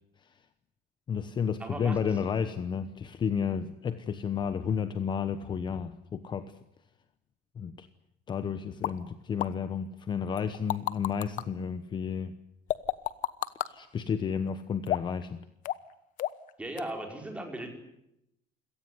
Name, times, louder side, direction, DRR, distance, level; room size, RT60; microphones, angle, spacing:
voice 1, 1.1-6.5 7.6-7.9 8.3-12.3 13.7-15.4, left 7 dB, 25° left, 12 dB, 1.0 m, -32 dB
voice 2, 1.6-2.2 16.6-17.7, right 1 dB, 5° right, 3 dB, 5.2 m, -37 dB
sound 1, 8.8-8.9 9.4-9.5 10.4-11.4 12.7-13.7 14.9-15.2 15.6-15.9 16.2-16.5 16.8-16.9, left 13 dB, 50° left, 1.1 m, -30 dB
28.5 x 18.0 x 9.6 m, 0.81 s
cardioid pair, 180°, 17 cm